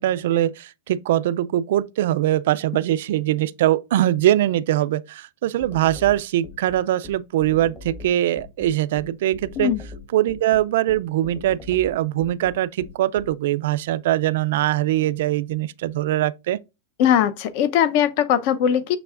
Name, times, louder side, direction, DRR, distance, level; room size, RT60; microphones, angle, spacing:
voice 1, 0.0-9.7 10.1-16.6, right 13 dB, 65° right, 0.4 m, -22 dB
sound 1, 5.6-13.3, left 3 dB, 20° left, 1.2 m, -40 dB
voice 2, 17.0-19.0, left 9 dB, 45° left, 0.7 m, -20 dB
6.8 x 6.4 x 2.5 m
supercardioid pair, 165°, 0 cm